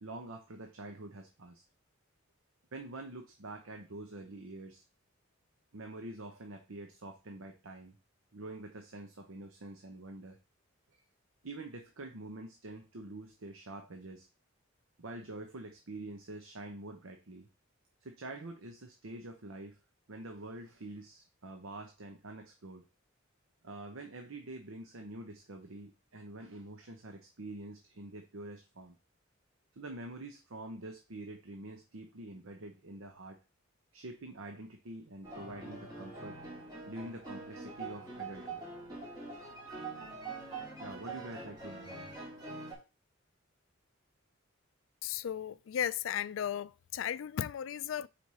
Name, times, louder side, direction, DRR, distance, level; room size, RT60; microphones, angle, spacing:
voice 1, 0.0-1.6 2.7-4.8 5.7-8.0 8.3-10.4 10.9-11.0 11.4-14.3 15.0-17.5 18.0-19.8 20.1-22.8 23.6-29.0 29.7-33.4 33.9-36.4 36.9-38.6 40.8-42.3, right 2 dB, 90° right, 0.9 m, -46 dB
sound 1, 35.2-42.7, right 3 dB, 20° right, 2.3 m, -44 dB
voice 2, 45.0-48.1, left 9 dB, 70° left, 0.3 m, -35 dB
4.7 x 4.4 x 5.5 m
head